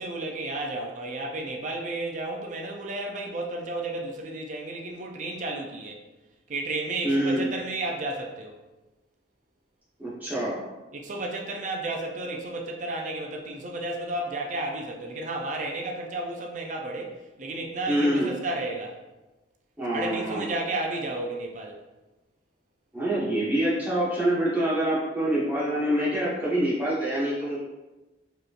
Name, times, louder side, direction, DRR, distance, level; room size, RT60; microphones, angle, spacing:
voice 1, 0.0-6.0 6.5-8.6 10.9-19.0 19.9-21.8, right 2 dB, 40° right, 1 dB, 0.4 m, -32 dB
voice 2, 7.0-7.4 10.0-10.6 17.9-18.3 19.8-20.5 22.9-27.6, right 1 dB, 10° right, -9 dB, 1.3 m, -25 dB
4.8 x 3.0 x 2.5 m, 1.1 s
head